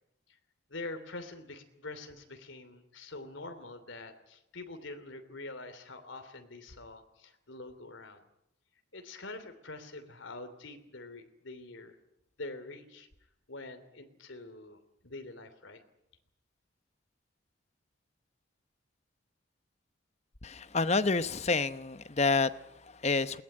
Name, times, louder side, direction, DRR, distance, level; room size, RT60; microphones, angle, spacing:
voice 1, 0.7-8.2 8.9-12.0 12.4-13.1 13.5-15.8, left 2 dB, 70° left, 2.9 m, -45 dB
voice 2, 20.4-23.4, left 3 dB, 35° left, 0.9 m, -29 dB
21.0 x 19.5 x 9.9 m
head